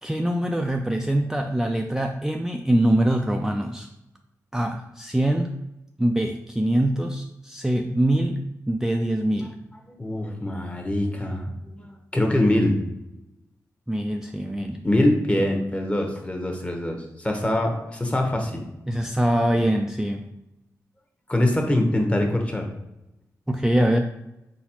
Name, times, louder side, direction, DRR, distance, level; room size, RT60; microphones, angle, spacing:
voice 1, 0.0-3.9 4.5-5.5 6.0-9.5 13.9-14.8 18.9-20.3 23.5-24.0, right 1 dB, 5° right, 3 dB, 0.3 m, -23 dB
voice 2, 9.8-11.9 12.1-12.8 14.8-18.6 21.3-22.6, left 1 dB, 20° left, 2 dB, 0.9 m, -23 dB
4.1 x 3.9 x 2.9 m, 0.89 s
cardioid pair, 70°, 6 cm